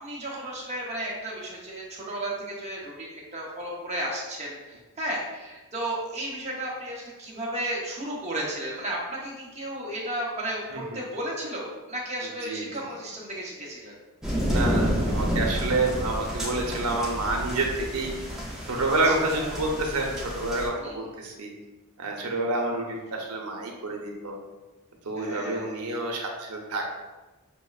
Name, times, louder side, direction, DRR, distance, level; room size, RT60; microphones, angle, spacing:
voice 1, 0.0-13.9 19.0-19.5 20.8-20.9 22.6-22.8 25.2-25.7, right 1 dB, 30° right, -4 dB, 0.8 m, -34 dB
sound 1, 14.2-20.7, equal, 5° right, 0.5 m, -29 dB
voice 2, 14.5-18.1 18.7-21.5 22.0-24.4 25.0-26.8, right 2 dB, 90° right, 0 dB, 0.7 m, -28 dB
6.1 x 2.1 x 2.3 m, 1.2 s
head